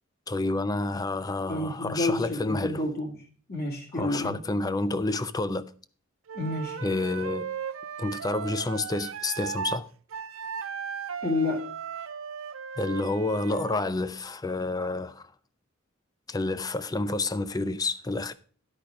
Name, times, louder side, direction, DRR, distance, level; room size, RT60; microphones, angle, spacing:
voice 1, 0.3-2.8 3.9-5.7 6.8-7.5 8.0-9.9 12.8-15.3 16.3-18.3, left 2 dB, 20° left, 0.4 m, -29 dB
voice 2, 1.5-3.1 3.5-4.4 6.3-6.8 11.2-11.7, left 2 dB, 50° left, 1.8 m, -29 dB
Wind instrument woodwind instrument, 6.3-9.8 10.1-13.9, right 7 dB, 75° right, 0.5 m, -36 dB
10.5 x 5.0 x 5.9 m
head